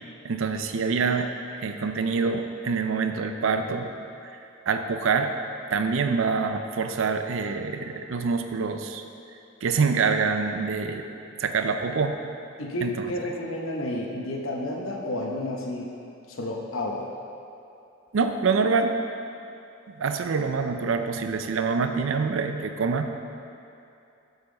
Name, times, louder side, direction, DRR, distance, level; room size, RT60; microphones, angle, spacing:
voice 1, 0.2-1.3 1.6-3.9 4.2-4.4 4.7-5.3 5.7-9.0 9.6-11.1 11.4-12.2 12.8-12.9 18.1-18.9 20.0-23.1, right 5 dB, 70° right, 7 dB, 0.4 m, -25 dB
voice 2, 12.6-15.9 16.3-17.1, left 1 dB, 75° left, 0 dB, 0.8 m, -31 dB
7.0 x 5.7 x 3.9 m, 2.7 s
head